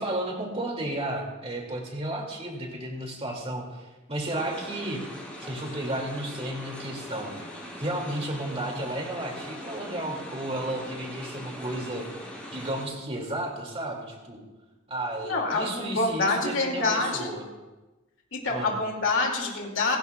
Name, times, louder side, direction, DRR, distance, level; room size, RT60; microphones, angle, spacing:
voice 1, 0.0-5.0 5.4-7.3 7.8-12.1 12.5-14.4 14.9-17.4 18.5-18.7, right 1 dB, 30° right, 0 dB, 2.4 m, -33 dB
sound 1, 4.3-12.8, left 1 dB, 5° left, 3.9 m, -41 dB
voice 2, 15.2-17.4 18.3-20.0, left 3 dB, 65° left, 0 dB, 2.5 m, -26 dB
29.5 x 10.5 x 2.4 m, 1.1 s
head